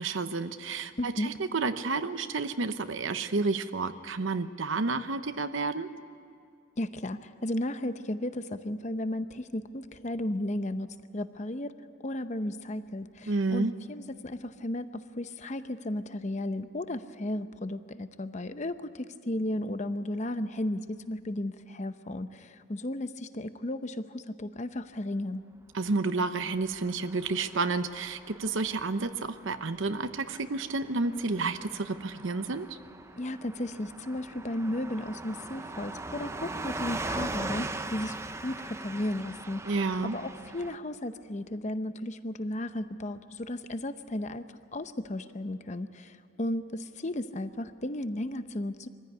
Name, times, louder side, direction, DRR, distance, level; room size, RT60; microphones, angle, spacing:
voice 1, 0.0-5.9 13.3-13.7 25.7-32.8 39.6-40.2, right 3 dB, 65° right, 10 dB, 0.8 m, -30 dB
voice 2, 1.0-1.3 6.8-10.9 11.1-11.7 12.0-25.4 33.2-38.2 38.4-48.9, left 1 dB, 35° left, 11 dB, 0.7 m, -34 dB
Car passing by / Truck, 26.4-40.8, right 2 dB, 15° right, 0.5 m, -40 dB
24.5 x 15.5 x 9.5 m, 2.4 s
head